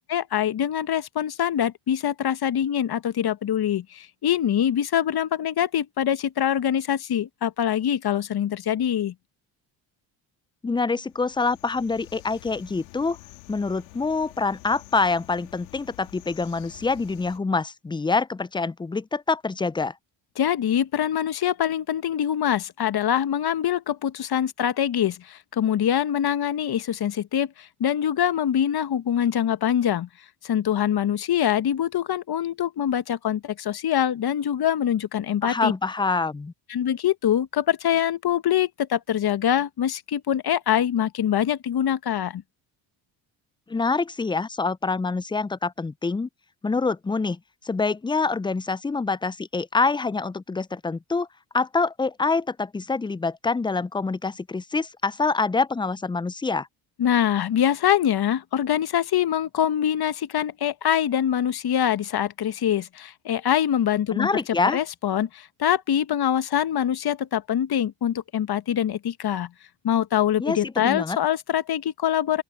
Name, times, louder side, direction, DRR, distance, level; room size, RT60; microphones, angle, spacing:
voice 1, 0.0-9.1 20.4-30.1 30.4-35.7 36.7-42.4 57.0-64.3 64.7-69.5 69.8-72.4, left 10 dB, 50° left, 1.5 m, -24 dB
voice 2, 10.6-13.2 13.5-19.9 35.4-36.5 43.7-46.3 46.6-47.4 47.7-51.3 51.5-56.7 64.1-64.8 70.4-71.2, left 4 dB, 10° left, 0.4 m, -26 dB
sound 1, 11.1-17.4, left 24 dB, 85° left, 2.5 m, -48 dB
open air
hypercardioid pair, 55°, 50 cm